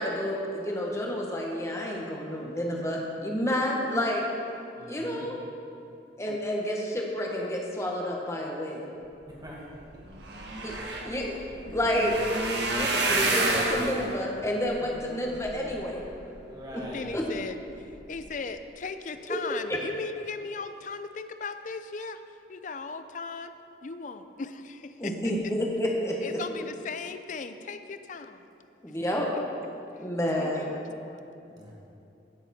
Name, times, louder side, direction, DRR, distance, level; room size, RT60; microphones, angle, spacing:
voice 1, 0.0-4.2 4.8-5.4 6.2-8.9 10.6-10.7 11.0-11.4 11.7-12.2 12.7-16.0 16.7-16.8 17.1-17.2 19.3-19.4 19.7-19.8 25.0-26.4 28.8-29.3 30.0-30.6, left 1 dB, 15° left, -1 dB, 1.4 m, -29 dB
voice 2, 4.7-5.3 9.3-9.8 11.9-12.2 16.5-17.2 31.5-31.7, equal, 25° right, -4 dB, 2.1 m, -43 dB
sound 1, 9.6-9.7 9.9-16.3 16.8-17.3 17.7-17.9 18.2-18.3, right 2 dB, 70° right, 1.4 m, -30 dB
voice 3, 16.9-17.6 18.1-22.2 22.5-23.5 23.8-25.1 26.2-28.5 29.0-29.1 30.4-31.4, left 4 dB, 45° left, 10 dB, 0.5 m, -38 dB
16.5 x 7.1 x 4.3 m, 2.8 s
head